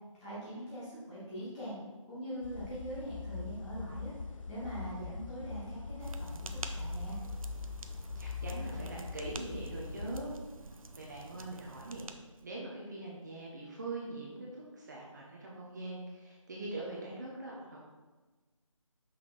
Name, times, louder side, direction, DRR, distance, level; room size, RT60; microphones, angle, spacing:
voice 1, 0.2-1.8 2.1-4.1 4.5-7.2, equal, 15° left, -10 dB, 1.8 m, -42 dB
sound 1, 2.4-10.3, left 4 dB, 70° left, 0.6 m, -42 dB
sound 2, 6.0-12.5, right 3 dB, 85° right, 0.6 m, -48 dB
voice 2, 8.1-10.3 11.0-17.8, right 2 dB, 35° right, -4 dB, 1.1 m, -42 dB
5.9 x 4.9 x 4.2 m, 1.2 s
figure-of-eight pair, 160°, 17 cm